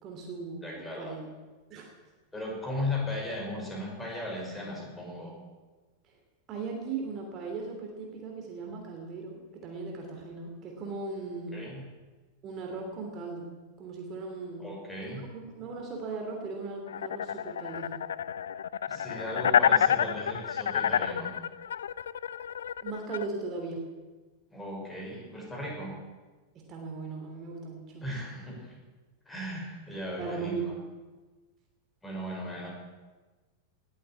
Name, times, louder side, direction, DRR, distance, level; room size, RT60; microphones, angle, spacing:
voice 1, 0.0-1.3 1.7-1.9 6.5-11.6 12.4-13.5 13.8-14.7 15.0-18.0 22.8-23.8 26.5-28.1 30.2-30.8, right 4 dB, 35° right, 2 dB, 3.0 m, -38 dB
voice 2, 0.6-1.2 2.3-5.3 11.5-11.8 14.6-15.2 18.9-21.3 24.5-25.9 28.0-28.8 29.3-30.7 32.0-32.7, left 1 dB, 10° left, -1 dB, 5.4 m, -36 dB
sound 1, 16.9-23.2, left 9 dB, 65° left, 0.4 m, -28 dB
19.0 x 8.6 x 8.4 m, 1.3 s
figure-of-eight pair, 90°, 0 cm